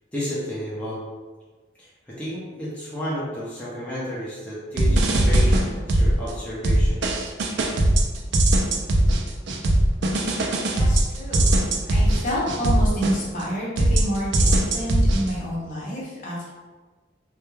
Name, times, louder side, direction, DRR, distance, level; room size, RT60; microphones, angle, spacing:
voice 1, 0.1-1.0 1.8-7.0, equal, 5° left, -9 dB, 0.5 m, -32 dB
sound 1, 4.8-6.3 6.6-13.4 13.8-15.3, right 1 dB, 70° right, 0.3 m, -20 dB
voice 2, 10.7-16.5, equal, 45° left, -6 dB, 0.7 m, -29 dB
2.2 x 2.2 x 3.0 m, 1.3 s
head